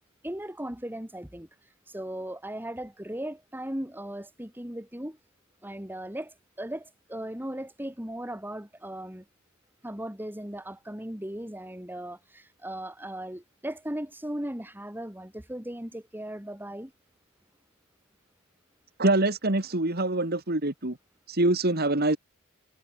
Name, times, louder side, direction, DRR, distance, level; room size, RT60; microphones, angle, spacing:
voice 1, 0.2-1.5 1.9-5.2 5.6-9.2 9.8-16.9, right 1 dB, 10° right, 2.4 m, -37 dB
voice 2, 19.0-21.0 21.3-22.2, right 2 dB, 45° right, 2.4 m, -25 dB
head